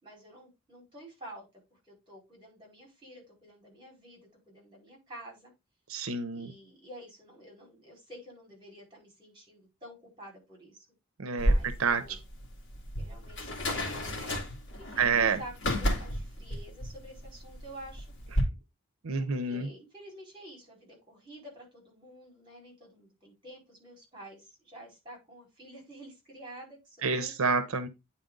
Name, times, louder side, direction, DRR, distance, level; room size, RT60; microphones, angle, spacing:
voice 1, 0.0-1.4 1.7-5.5 6.3-10.9 11.4-12.2 13.0-14.5 14.8-18.1 19.2-27.3, right 1 dB, 25° right, 4.6 m, -49 dB
voice 2, 5.9-6.5 11.2-11.5 11.8-12.0 15.0-15.4 19.0-19.7 27.0-27.9, right 5 dB, 85° right, 0.7 m, -28 dB
sound 1, 11.4-18.4, equal, 55° left, 2.3 m, -32 dB
9.2 x 4.4 x 3.8 m
head